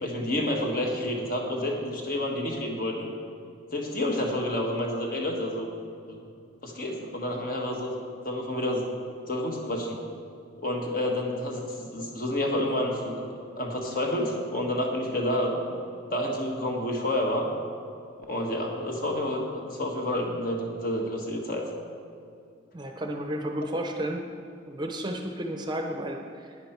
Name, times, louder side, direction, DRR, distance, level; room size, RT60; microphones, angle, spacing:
voice 1, 0.0-3.1 3.7-5.7 6.1-6.2 6.6-7.9 8.2-8.9 9.2-10.0 10.6-13.3 13.6-15.6 16.1-17.5 18.3-21.7, left 1 dB, 45° left, 1 dB, 1.5 m, -29 dB
voice 2, 22.7-24.2 24.6-26.6, right 1 dB, 25° right, 3 dB, 0.7 m, -32 dB
11.0 x 9.7 x 4.5 m, 2.5 s
head